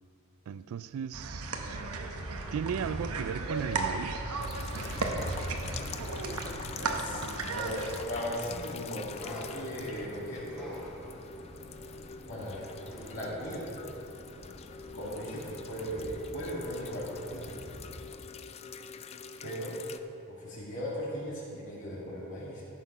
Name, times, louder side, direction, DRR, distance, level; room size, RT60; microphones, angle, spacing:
voice 1, 0.5-1.8 2.5-4.2, right 7 dB, 70° right, 16 dB, 0.3 m, -36 dB
sound 1, 1.1-8.0, right 3 dB, 90° right, 0.9 m, -35 dB
sound 2, 4.4-20.0, left 6 dB, 30° left, 0.3 m, -45 dB
sound 3, 5.5-18.1, equal, 5° left, 2.4 m, -48 dB
voice 2, 7.0-10.7 12.3-13.7 14.9-17.6 19.4-19.7 20.3-22.6, equal, 60° left, -8 dB, 2.4 m, -38 dB
13.5 x 6.0 x 5.5 m, 2.8 s
head